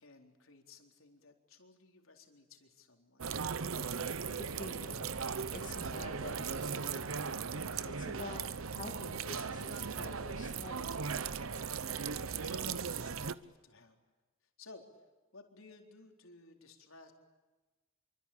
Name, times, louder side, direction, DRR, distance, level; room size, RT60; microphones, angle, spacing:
voice 1, 0.0-3.3 12.0-14.0 14.6-14.8 15.3-17.1, left 3 dB, 80° left, 3 dB, 4.0 m, -57 dB
sound 1, 3.2-13.3, right 5 dB, 80° right, 0.9 m, -38 dB
voice 2, 4.4-5.1 5.5-7.1 7.8-10.9, left 2 dB, 40° left, 1 dB, 2.5 m, -47 dB
26.5 x 24.0 x 8.7 m, 1.2 s
head